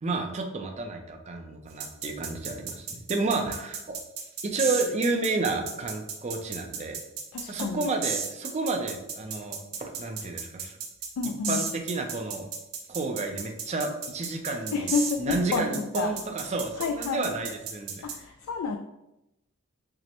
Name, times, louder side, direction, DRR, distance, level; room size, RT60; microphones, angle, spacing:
voice 1, 0.0-4.0 4.4-7.0 7.5-10.8 11.5-12.5 12.9-14.9 15.2-18.0, right 3 dB, 30° right, 3 dB, 0.4 m, -31 dB
sound 1, 1.8-18.2, right 6 dB, 65° right, 0.7 m, -34 dB
voice 2, 7.3-7.9 11.2-11.6 14.7-16.2 16.8-17.3 18.0-18.8, left 5 dB, 80° left, 5 dB, 0.3 m, -29 dB
5.9 x 2.1 x 2.9 m, 0.90 s
head